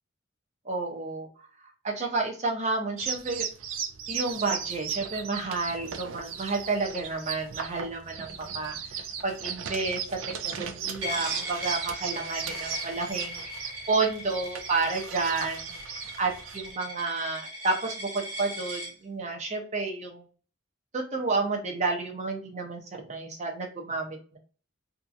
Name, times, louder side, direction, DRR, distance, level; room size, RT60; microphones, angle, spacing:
voice 1, 0.7-1.3 1.8-3.5 4.1-10.2 10.4-13.4 13.9-15.7 16.2-20.2 20.9-22.8 23.1-24.4, right 3 dB, 35° right, 2 dB, 0.6 m, -30 dB
sound 1, 3.0-16.7, right 7 dB, 85° right, 0.4 m, -37 dB
Coin (dropping), 11.0-18.9, equal, 60° right, 0.9 m, -39 dB
2.7 x 2.4 x 2.4 m, 0.39 s
head